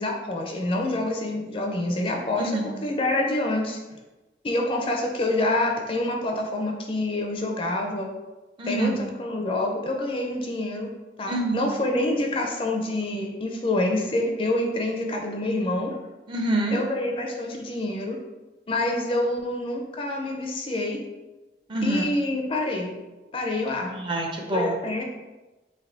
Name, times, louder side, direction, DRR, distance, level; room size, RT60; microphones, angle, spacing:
voice 1, 0.0-2.5 2.8-3.8 4.4-8.1 8.6-10.9 11.2-16.0 16.7-18.2 18.7-21.0 21.8-22.9 23.3-23.9 24.5-25.0, left 1 dB, 30° left, 1 dB, 0.4 m, -27 dB
voice 2, 2.4-2.7 8.6-9.0 11.3-11.7 16.3-16.8 21.7-22.0 23.9-24.7, right 1 dB, 25° right, 1 dB, 0.4 m, -26 dB
3.3 x 2.6 x 3.8 m, 1.1 s
head